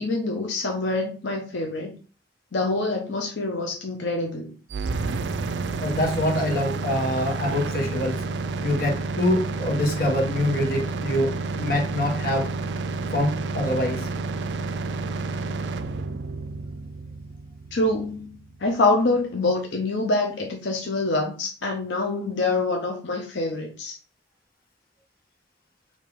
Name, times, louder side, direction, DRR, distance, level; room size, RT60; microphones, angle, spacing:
voice 1, 0.0-2.0 2.5-4.5 13.0-13.1 17.7-24.0, left 2 dB, 85° left, 1 dB, 0.8 m, -26 dB
sound 1, 4.7-18.6, right 3 dB, 75° right, 0.4 m, -30 dB
voice 2, 5.8-8.2 8.6-12.5 13.1-14.0, left 1 dB, 55° left, -1 dB, 1.3 m, -25 dB
4.9 x 2.7 x 3.5 m, 0.37 s
head